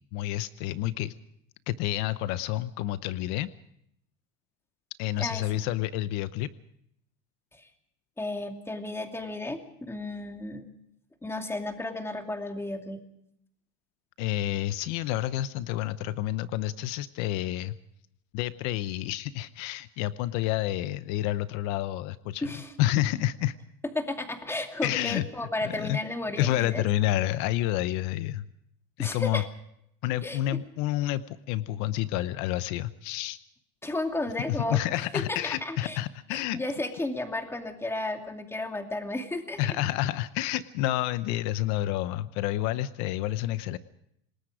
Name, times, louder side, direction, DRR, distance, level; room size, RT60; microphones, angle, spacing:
voice 1, 0.1-1.1 1.7-3.5 5.0-6.5 14.2-17.7 18.3-22.5 22.8-23.5 24.8-25.2 25.6-26.0 26.3-28.5 29.0-29.4 30.0-33.4 34.5-36.6 39.6-43.8, left 14 dB, 75° left, 14 dB, 0.9 m, -29 dB
voice 2, 8.2-10.7 11.2-13.0 22.4-22.7 23.9-26.8 29.0-29.5 30.2-30.6 33.8-36.0 36.3-39.6, left 2 dB, 10° left, 4 dB, 2.5 m, -33 dB
27.0 x 19.5 x 5.0 m, 0.76 s
cardioid pair, 140°, 29 cm